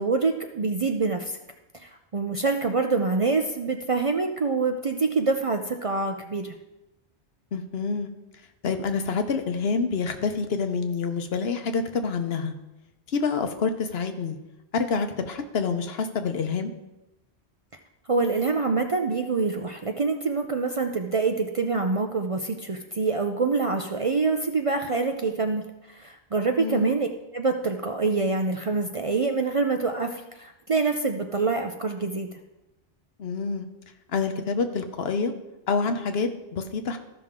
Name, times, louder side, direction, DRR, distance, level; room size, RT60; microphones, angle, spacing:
voice 1, 0.0-1.4 1.7-6.5 18.1-27.1 27.3-32.3, right 4 dB, 45° right, 5 dB, 0.5 m, -26 dB
voice 2, 7.5-8.1 8.6-12.5 13.1-14.4 14.7-16.7 26.6-26.9 33.2-33.7 34.1-35.3 35.7-37.0, left 5 dB, 70° left, 7 dB, 1.0 m, -27 dB
14.0 x 5.9 x 3.7 m, 0.97 s
omnidirectional pair, 1.1 m